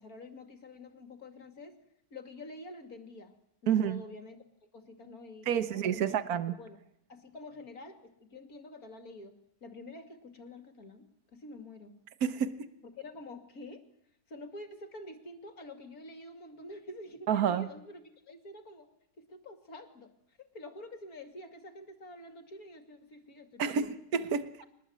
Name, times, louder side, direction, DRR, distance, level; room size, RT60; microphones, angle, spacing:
voice 1, 0.0-1.8 2.1-3.3 3.6-4.4 4.7-6.2 6.5-6.8 7.1-9.3 9.6-12.0 12.9-13.8 14.3-18.9 19.2-23.9, left 2 dB, 60° left, 3.1 m, -48 dB
voice 2, 3.7-4.0 5.5-6.6 12.2-12.7 17.3-17.7 23.6-24.5, right 8 dB, 60° right, 1.6 m, -29 dB
24.0 x 20.0 x 9.6 m
omnidirectional pair, 1.8 m